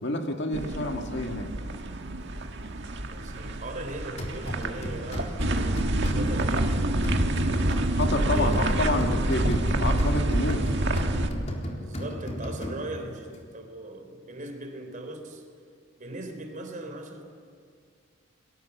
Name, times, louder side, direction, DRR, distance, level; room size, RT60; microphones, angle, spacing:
voice 1, 0.0-1.5 7.9-10.6, left 1 dB, 60° left, 4 dB, 2.1 m, -29 dB
sound 1, 0.5-11.3, right 1 dB, 60° right, 1.8 m, -27 dB
voice 2, 3.1-5.7 6.2-7.0 8.3-8.6 11.8-15.4 16.0-17.2, right 2 dB, 40° right, 5 dB, 4.0 m, -39 dB
sound 2, 4.2-13.1, equal, 35° left, 3.9 m, -35 dB
29.5 x 22.5 x 7.2 m, 2.2 s
head